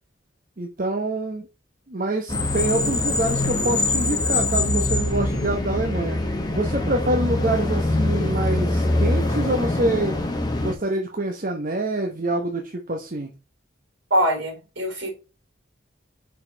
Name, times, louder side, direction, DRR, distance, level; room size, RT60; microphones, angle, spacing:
voice 1, 0.6-1.5 1.9-6.2 6.5-10.2 10.6-13.3, right 2 dB, 45° right, 0.9 m, -26 dB
sound 1, 2.3-10.7, left 2 dB, 20° left, 1.1 m, -23 dB
voice 2, 14.1-15.1, equal, 65° right, 3.9 m, -23 dB
5.8 x 4.9 x 4.5 m
head